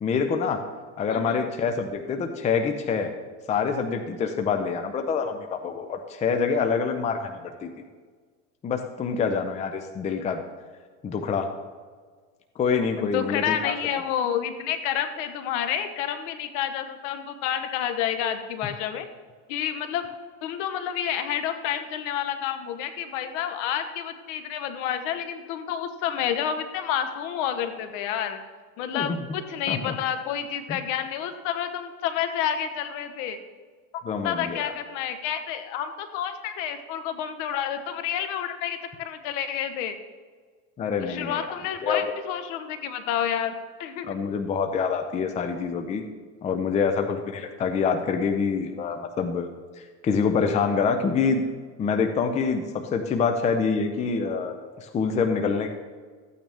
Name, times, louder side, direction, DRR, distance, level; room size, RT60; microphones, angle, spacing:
voice 1, 0.0-0.6 1.0-3.1 3.5-7.7 8.6-10.4 11.0-11.5 12.6-13.7 28.9-29.2 29.7-30.0 30.7-30.8 34.0-34.7 40.8-41.5 41.8-42.0 44.0-46.0 46.4-49.5 50.0-51.4 51.8-55.7, left 5 dB, 15° left, 6 dB, 0.6 m, -26 dB
voice 2, 1.1-1.5 13.0-19.1 19.5-20.1 20.4-28.4 28.8-33.4 34.2-40.0 41.0-44.1, left 9 dB, 60° left, 9 dB, 1.2 m, -29 dB
13.5 x 9.0 x 3.5 m, 1.5 s
supercardioid pair, 130°, 40 cm